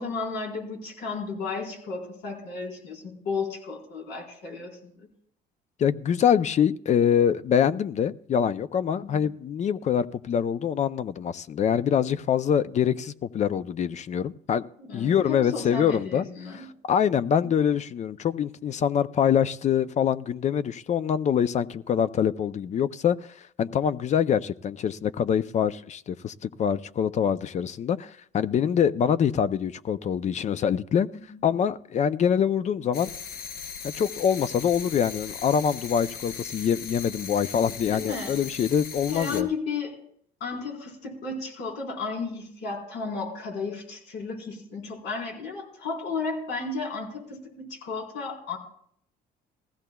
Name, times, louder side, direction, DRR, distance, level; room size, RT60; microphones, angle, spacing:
voice 1, 0.0-5.1 9.0-9.2 14.8-16.7 17.4-17.6 31.3-31.4 37.9-38.4 39.1-40.0 40.4-48.6, left 4 dB, 85° left, -1 dB, 4.1 m, -34 dB
voice 2, 5.8-14.6 14.9-16.3 16.5-23.2 23.6-31.1 31.4-33.1 33.8-39.5, left 8 dB, 45° left, 15 dB, 0.5 m, -25 dB
sound 1, 32.9-39.4, left 6 dB, 60° left, 1.1 m, -38 dB
19.0 x 15.5 x 2.3 m, 0.65 s
cardioid pair, 110°, 17 cm